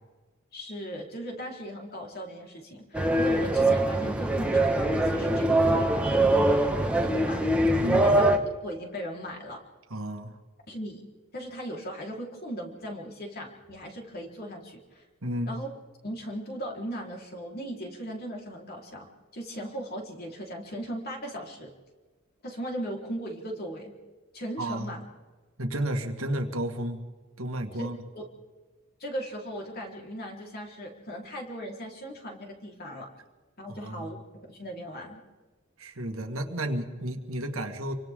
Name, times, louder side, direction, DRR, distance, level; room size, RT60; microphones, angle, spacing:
voice 1, 0.5-8.3 8.6-9.6 10.7-11.0 11.3-15.0 15.5-15.7 16.0-19.1 19.3-21.7 22.4-23.9 24.3-25.0 27.7-27.9 28.1-28.2 29.0-33.1 33.6-34.2 34.5-35.2, equal, 50° left, -1 dB, 4.3 m, -38 dB
sound 1, 2.9-8.4, right 1 dB, 5° right, 1.6 m, -23 dB
voice 2, 7.8-8.1 9.9-10.4 15.2-15.5 24.6-24.9 25.6-27.0 27.4-28.0 33.7-34.1 35.8-37.9, right 1 dB, 80° right, 4 dB, 2.0 m, -32 dB
29.0 x 24.5 x 3.8 m, 1.3 s
head